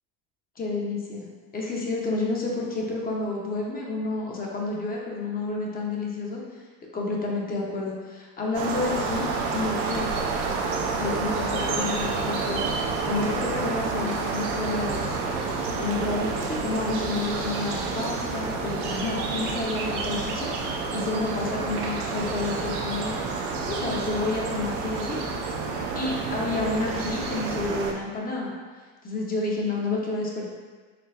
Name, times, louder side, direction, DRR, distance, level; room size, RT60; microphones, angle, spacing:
voice 1, 0.6-1.2 1.5-6.6 6.9-10.1 11.0-15.5 15.8-23.3 23.6-25.2 25.9-28.5 29.0-30.5, left 3 dB, 25° left, -2 dB, 0.7 m, -30 dB
sound 1, 8.5-27.9, right 4 dB, 65° right, 0.6 m, -29 dB
4.4 x 3.2 x 2.4 m, 1.4 s
supercardioid pair, 110°, 34 cm